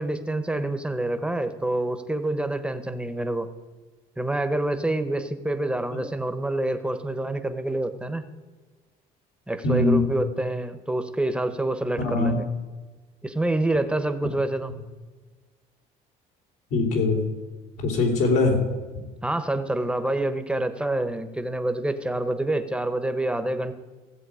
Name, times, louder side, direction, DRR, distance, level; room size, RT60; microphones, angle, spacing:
voice 1, 0.0-3.5 4.2-8.2 9.5-12.4 13.2-14.7 19.2-23.7, right 1 dB, 5° right, 9 dB, 1.1 m, -27 dB
voice 2, 9.6-10.1 12.0-12.4 16.7-17.3 17.8-18.6, left 3 dB, 85° left, -1 dB, 3.4 m, -22 dB
16.0 x 7.5 x 5.0 m, 1.3 s
supercardioid pair, 90°, 16 cm